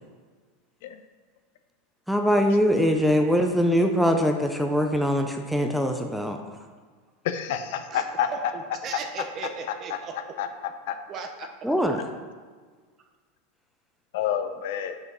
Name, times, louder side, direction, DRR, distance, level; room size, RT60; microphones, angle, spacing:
voice 1, 2.1-6.4 11.6-12.0, equal, ahead, 4 dB, 0.5 m, -22 dB
voice 2, 7.2-8.5 10.4-10.5 10.9-11.0 14.1-15.0, left 9 dB, 65° left, 8 dB, 0.6 m, -28 dB
voice 3, 7.9-10.1 11.1-11.5, right 5 dB, 30° right, 6 dB, 0.8 m, -37 dB
6.5 x 5.0 x 5.3 m, 1.5 s
supercardioid pair, 140°, 0 cm